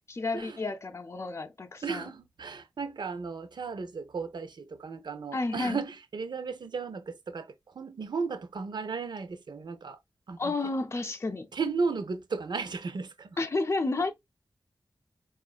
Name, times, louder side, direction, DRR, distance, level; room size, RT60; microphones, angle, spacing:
voice 1, 0.0-2.1 5.3-5.8 10.4-11.5 13.4-14.1, left 3 dB, 35° left, 0.6 m, -31 dB
voice 2, 1.8-10.0 10.3-10.5 11.5-13.4 14.0-14.1, right 4 dB, 70° right, 0.7 m, -35 dB
4.8 x 2.5 x 2.3 m
wide cardioid pair, 80°, 8 cm